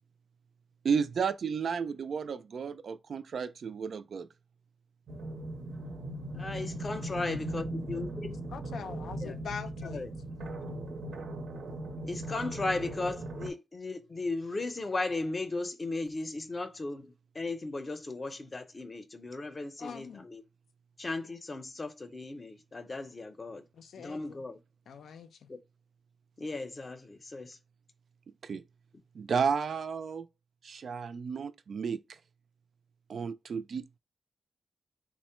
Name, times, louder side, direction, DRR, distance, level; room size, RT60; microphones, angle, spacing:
voice 1, 0.8-4.3 28.4-28.6 29.1-30.3 30.6-32.0 33.1-34.0, right 6 dB, 60° right, 0.3 m, -32 dB
sound 1, 5.1-13.5, right 1 dB, 85° right, 0.7 m, -38 dB
voice 2, 6.3-8.3 9.2-9.4 9.9-10.1 12.0-20.4 21.0-23.6 24.0-24.6 25.5-25.6 26.4-27.6, left 3 dB, 30° left, 0.6 m, -36 dB
voice 3, 8.5-10.1 19.8-20.3 23.8-24.4 24.9-25.5, left 6 dB, 90° left, 0.4 m, -43 dB
3.6 x 2.1 x 4.3 m
wide cardioid pair, 135°, 0 cm